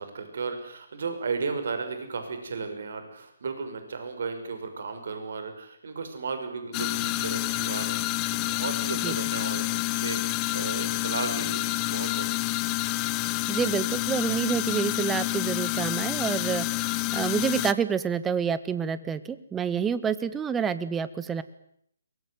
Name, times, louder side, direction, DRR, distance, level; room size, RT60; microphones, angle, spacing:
voice 1, 0.0-12.4, right 4 dB, 60° right, 8 dB, 5.8 m, -35 dB
sound 1, 6.7-17.7, left 20 dB, 25° left, 1.0 m, -28 dB
voice 2, 13.5-16.7 17.1-21.4, right 7 dB, 10° right, 14 dB, 1.4 m, -28 dB
23.0 x 21.5 x 9.5 m, 0.70 s
figure-of-eight pair, 140°, 0 cm